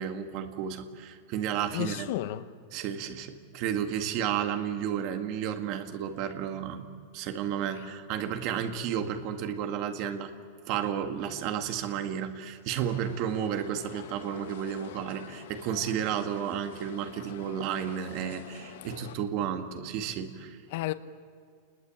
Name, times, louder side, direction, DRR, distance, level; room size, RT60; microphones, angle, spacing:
voice 1, 0.0-2.1 2.7-10.3 10.7-20.6, right 9 dB, 40° right, 1.9 m, -32 dB
voice 2, 1.7-2.5 20.7-20.9, left 15 dB, 55° left, 0.9 m, -32 dB
sound 1, 12.9-19.2, left 11 dB, 70° left, 1.4 m, -47 dB
28.5 x 21.0 x 8.9 m
supercardioid pair, 170°, 0 cm